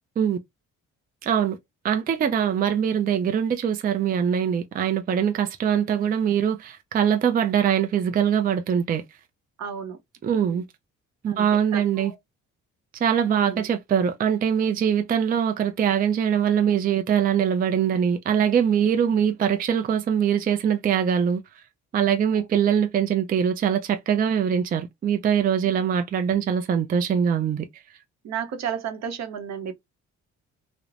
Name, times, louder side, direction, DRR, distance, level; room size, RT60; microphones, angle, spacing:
voice 1, 1.2-1.6 1.8-9.0 10.2-10.6 11.2-12.1 13.0-21.4 21.9-27.6, right 8 dB, 30° right, 0.4 m, -22 dB
voice 2, 2.2-2.7 9.6-10.0 10.3-10.6 11.3-11.5 11.7-12.2 13.3-13.7 22.3-22.4 28.2-29.7, right 7 dB, 60° right, 0.7 m, -33 dB
3.1 x 2.0 x 2.4 m
cardioid pair, 90°, 30 cm